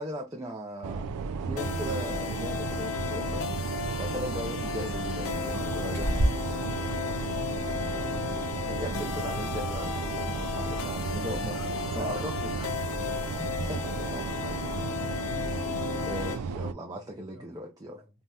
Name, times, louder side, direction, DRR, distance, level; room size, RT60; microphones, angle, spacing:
voice 1, 0.0-3.4 3.9-6.2 8.7-11.6 11.9-12.7 13.1-13.2 13.7-14.2 16.1-18.0, equal, 15° right, 0.4 m, -38 dB
sound 1, 0.8-16.7, right 5 dB, 80° right, 0.3 m, -34 dB
sound 2, 1.6-16.4, left 7 dB, 65° left, 0.4 m, -35 dB
Bird, 4.4-11.5, right 1 dB, 10° left, 1.2 m, -36 dB
voice 2, 5.2-8.5 11.5-12.2 12.5-12.6 13.7-15.3 17.3-17.5 17.9-18.1, right 2 dB, 65° right, 1.3 m, -48 dB
2.7 x 2.2 x 3.3 m
head